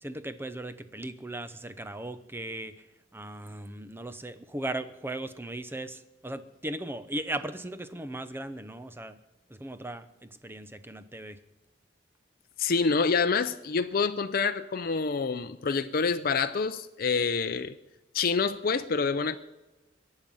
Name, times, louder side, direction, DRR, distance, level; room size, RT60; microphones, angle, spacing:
voice 1, 0.0-2.9 3.1-9.2 9.5-11.4, right 1 dB, 10° right, 0.7 m, -37 dB
voice 2, 12.6-17.8 18.1-19.4, left 5 dB, 50° left, 0.6 m, -27 dB
22.0 x 9.0 x 5.5 m
head